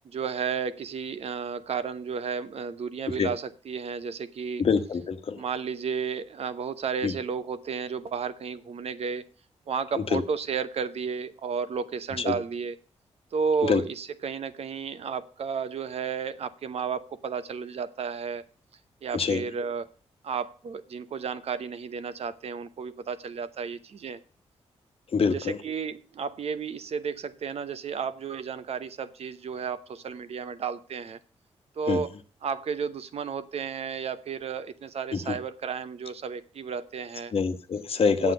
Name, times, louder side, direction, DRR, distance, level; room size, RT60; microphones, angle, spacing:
voice 1, 0.0-4.6 5.4-9.2 9.7-12.7 13.3-18.4 19.0-19.9 20.2-24.2 25.3-31.2 31.8-32.1 32.4-37.3 38.2-38.3, right 6 dB, 65° right, 12 dB, 0.9 m, -32 dB
voice 2, 4.6-5.4 7.0-7.2 10.1-10.2 12.2-12.3 13.7-13.8 19.1-19.5 25.1-25.6 31.9-32.0 35.1-35.4 37.3-38.3, left 5 dB, 55° left, 9 dB, 1.2 m, -25 dB
8.0 x 7.3 x 7.8 m, 0.41 s
cardioid pair, 80°, 11 cm